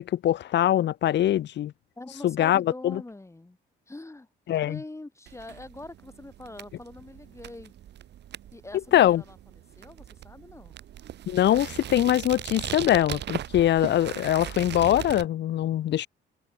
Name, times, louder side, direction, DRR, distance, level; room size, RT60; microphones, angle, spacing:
voice 1, 0.0-1.7 2.2-3.0 4.5-4.8 8.9-9.2 11.3-16.1, left 12 dB, 60° left, 0.7 m, -23 dB
voice 2, 2.0-3.6 3.9-7.7 8.5-9.4 9.8-10.7, left 2 dB, 15° left, 5.9 m, -43 dB
sound 1, 5.3-15.2, right 11 dB, 60° right, 0.8 m, -38 dB
sound 2, 5.7-15.0, right 14 dB, 85° right, 4.6 m, -57 dB
cardioid pair, 90°, 20 cm